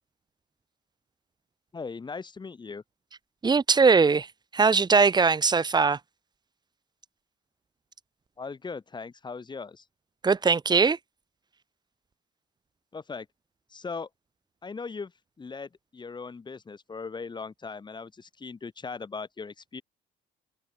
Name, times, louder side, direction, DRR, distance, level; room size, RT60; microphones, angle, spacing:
voice 1, 1.7-2.8 8.4-9.8 12.9-13.3 13.7-14.1 14.6-15.1 15.4-19.8, left 4 dB, 25° left, 5.1 m, -39 dB
voice 2, 3.4-4.3 4.5-6.0 10.2-11.0, right 4 dB, 25° right, 1.9 m, -20 dB
cardioid pair, 110°, 17 cm